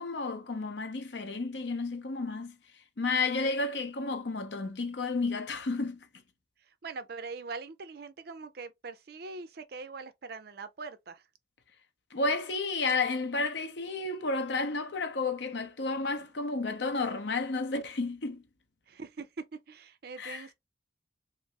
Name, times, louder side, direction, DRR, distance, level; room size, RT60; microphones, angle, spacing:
voice 1, 0.0-2.6 3.0-6.0 12.1-18.4 20.2-20.4, left 3 dB, 65° left, 0.7 m, -31 dB
voice 2, 6.6-11.3 18.9-20.5, right 4 dB, 55° right, 0.5 m, -42 dB
3.3 x 2.6 x 2.9 m
head